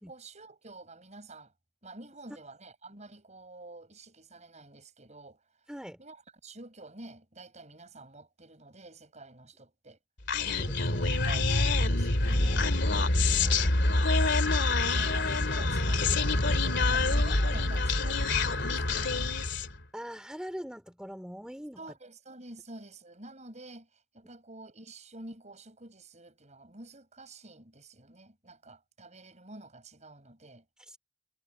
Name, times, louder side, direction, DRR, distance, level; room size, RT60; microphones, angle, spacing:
voice 1, 0.0-1.5 1.8-5.4 6.0-10.0 10.5-12.7 13.0-19.3 21.8-30.6, right 2 dB, 35° right, 7.1 m, -49 dB
voice 2, 5.7-6.0 10.4-10.7 19.9-21.8 30.9-31.0, equal, 5° right, 4.1 m, -41 dB
Human voice, 10.3-19.8, left 2 dB, 60° left, 2.9 m, -26 dB
head